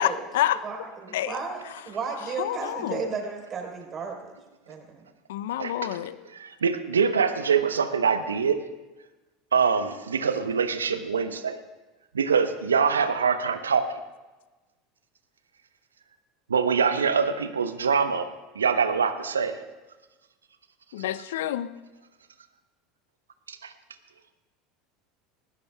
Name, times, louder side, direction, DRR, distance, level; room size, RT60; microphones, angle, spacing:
voice 1, 0.0-0.6 1.1-1.4 2.4-3.1 5.3-6.2 20.9-21.7, left 12 dB, 70° left, 15 dB, 0.6 m, -28 dB
voice 2, 0.6-4.3 4.7-5.1, right 5 dB, 35° right, 1 dB, 4.2 m, -34 dB
voice 3, 5.6-5.9 6.3-8.6 9.5-11.6 12.1-14.0 16.5-18.3 18.5-19.6 23.5-23.7, right 6 dB, 80° right, 10 dB, 0.9 m, -24 dB
20.0 x 19.5 x 2.3 m, 1.2 s
figure-of-eight pair, 75°, 0 cm